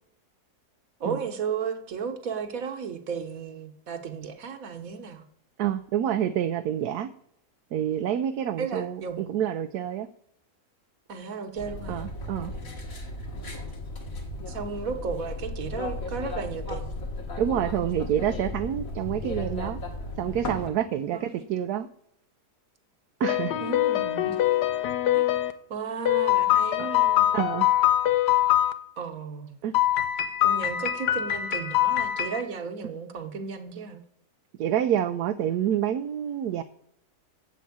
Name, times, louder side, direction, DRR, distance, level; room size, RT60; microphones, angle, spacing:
voice 1, 1.0-5.2 8.6-9.3 11.1-12.0 14.5-16.8 21.1-21.5 23.6-24.4 25.1-25.3 25.7-27.3 29.0-29.6 30.4-34.0, right 6 dB, 60° right, 8 dB, 1.6 m, -34 dB
voice 2, 5.6-7.1 7.7-8.9 9.3-10.1 11.9-12.5 17.4-19.8 20.2-21.9 23.2-23.5 27.3-27.7 29.6-29.7 34.6-36.6, right 10 dB, 75° right, 10 dB, 1.1 m, -27 dB
sound 1, 11.6-20.7, left 2 dB, 55° left, 2.3 m, -35 dB
sound 2, 23.2-25.5 26.1-28.7 29.7-32.4, left 13 dB, 85° left, 1.4 m, -23 dB
8.1 x 7.6 x 8.5 m, 0.72 s
omnidirectional pair, 1.7 m